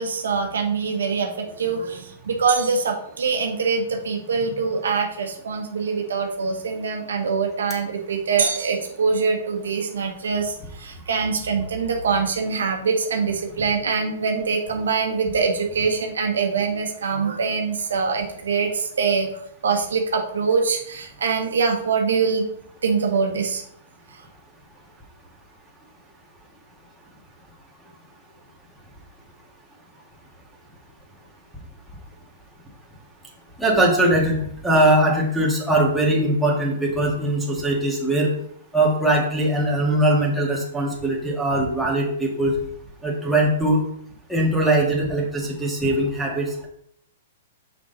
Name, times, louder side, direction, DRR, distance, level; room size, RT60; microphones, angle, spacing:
voice 1, 0.0-1.3 1.6-19.3 19.6-22.4 22.8-23.6, right 5 dB, 85° right, 3 dB, 1.4 m, -24 dB
voice 2, 33.6-34.4 34.6-38.3 38.7-42.6 43.0-43.8 44.3-46.7, right 1 dB, 5° right, -4 dB, 2.0 m, -21 dB
6.0 x 5.9 x 4.1 m, 0.68 s
hypercardioid pair, 135°, 0 cm